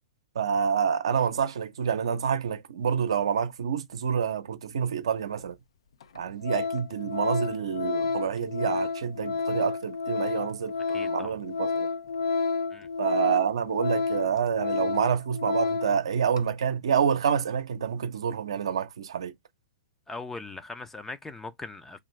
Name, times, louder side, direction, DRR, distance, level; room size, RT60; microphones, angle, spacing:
voice 1, 0.3-5.6 6.1-11.9 13.0-19.3, right 7 dB, 80° right, 0.6 m, -28 dB
Organ, 5.4-5.5 6.0-6.2 6.4-16.0 16.3-16.5, left 4 dB, 75° left, 0.4 m, -30 dB
voice 2, 10.9-11.4 12.7-12.9 20.1-22.0, left 3 dB, 10° left, 0.4 m, -40 dB
2.6 x 2.4 x 3.1 m
hypercardioid pair, 130°, 3 cm